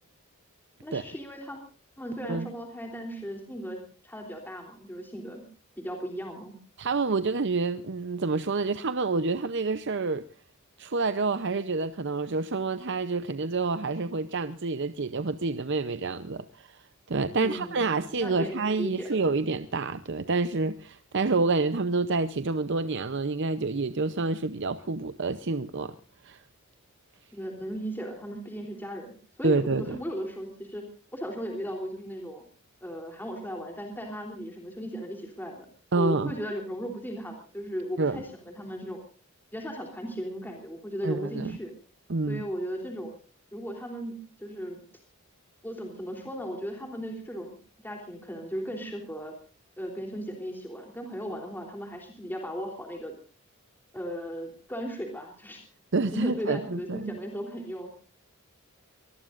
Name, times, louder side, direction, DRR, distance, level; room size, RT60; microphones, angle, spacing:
voice 1, 0.8-1.6 2.0-5.4 5.8-6.6 17.4-18.5 18.8-19.2 27.3-30.8 31.1-32.4 32.8-35.7 35.9-39.0 39.5-41.7 42.3-43.1 43.5-44.8 45.6-47.6 47.8-49.3 49.8-53.1 53.9-55.6 56.1-57.9, equal, 10° left, 3.3 m, -36 dB
voice 2, 6.8-10.2 10.8-16.8 17.1-25.9 26.2-26.4 29.4-30.0 35.9-36.3 38.0-38.2 41.0-41.5 42.1-42.5 55.9-57.2, right 3 dB, 55° right, 0.7 m, -28 dB
24.0 x 20.0 x 2.5 m
head